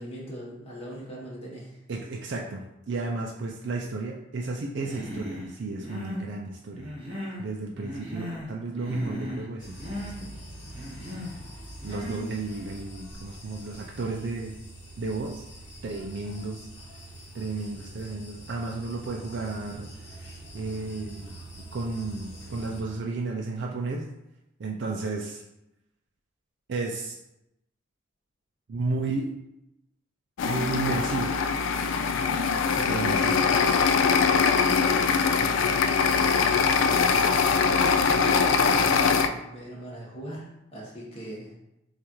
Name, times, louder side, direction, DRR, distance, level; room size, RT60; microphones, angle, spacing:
voice 1, 0.0-1.8 32.0-32.4 34.7-35.4 36.4-37.0 37.7-41.5, right 1 dB, 30° left, -5 dB, 1.1 m, -40 dB
voice 2, 1.9-6.9 7.4-10.3 11.8-14.6 15.0-15.5 15.8-16.7 17.3-21.4 21.7-24.1 24.6-25.4 26.7-27.2 28.7-29.3 30.4-31.4 32.7-33.5, right 3 dB, 60° right, 0 dB, 0.4 m, -33 dB
Human voice, 4.8-5.5 5.8-6.3 6.7-7.5 7.8-8.5 8.8-9.5 9.8-10.1 10.7-11.3 11.8-12.3, equal, 30° right, 1.0 m, -37 dB
sound 1, 9.6-22.8, right 1 dB, 60° left, 1.0 m, -44 dB
sound 2, 30.4-39.3, left 5 dB, 80° left, 0.3 m, -22 dB
6.1 x 2.4 x 3.0 m, 0.89 s
head